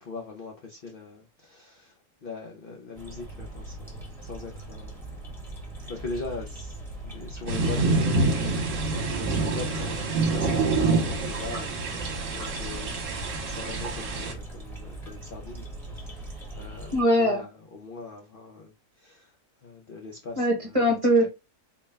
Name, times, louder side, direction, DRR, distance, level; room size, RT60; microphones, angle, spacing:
voice 1, 0.0-1.9 2.2-5.0 5.9-12.9 13.4-15.7 15.9-16.2 16.6-18.7 19.0-19.3 19.6-20.5 20.8-20.9 21.2-21.3, left 3 dB, 55° left, 0.6 m, -41 dB
sound 1, 2.9-17.0, right 2 dB, ahead, 0.9 m, -41 dB
sound 2, 7.5-14.3, right 3 dB, 60° right, 1.3 m, -26 dB
voice 2, 16.9-17.4 20.4-21.3, equal, 25° right, 1.0 m, -21 dB
4.2 x 2.2 x 3.3 m
omnidirectional pair, 1.6 m